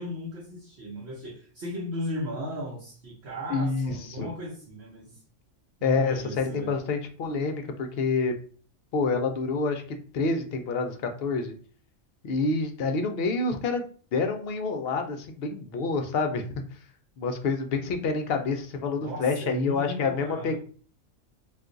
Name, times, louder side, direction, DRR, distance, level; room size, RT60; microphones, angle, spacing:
voice 1, 0.0-5.2 5.8-6.7 19.0-20.6, left 1 dB, 55° right, -2 dB, 0.9 m, -36 dB
voice 2, 3.5-4.3 5.8-8.3 8.9-11.5 12.2-13.8 14.1-16.4 17.2-20.6, left 4 dB, 65° left, 5 dB, 0.6 m, -27 dB
2.5 x 2.3 x 3.7 m, 0.42 s
omnidirectional pair, 1.4 m